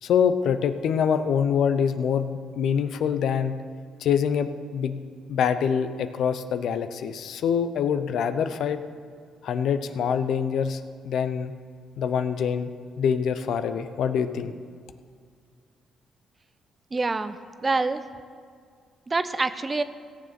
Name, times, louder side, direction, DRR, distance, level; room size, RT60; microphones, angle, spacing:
voice 1, 0.0-3.5 4.0-5.0 5.3-8.8 9.4-11.5 12.0-12.7 13.0-14.5, left 7 dB, 70° left, 10 dB, 0.7 m, -25 dB
voice 2, 16.9-18.0 19.1-19.8, right 3 dB, 25° right, 12 dB, 0.7 m, -26 dB
16.5 x 7.1 x 6.0 m, 2.1 s
cardioid pair, 90°, 0 cm